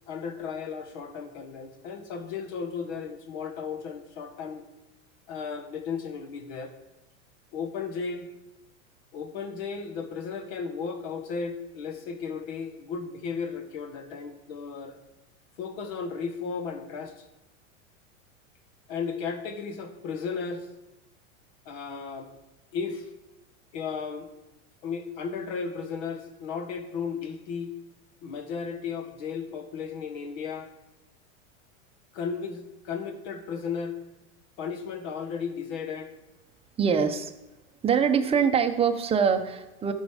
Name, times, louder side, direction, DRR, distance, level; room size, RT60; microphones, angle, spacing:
voice 1, 0.1-4.6 5.3-6.7 7.5-8.3 9.1-15.0 15.6-17.2 18.9-20.7 21.6-22.3 22.7-23.1 23.7-24.3 24.8-27.7 28.2-30.7 32.1-34.0 34.6-36.1, left 5 dB, 60° left, 8 dB, 1.5 m, -35 dB
voice 2, 36.8-37.3 37.8-39.9, right 6 dB, 15° right, 5 dB, 0.7 m, -23 dB
12.5 x 5.4 x 4.9 m, 0.97 s
supercardioid pair, 125°, 39 cm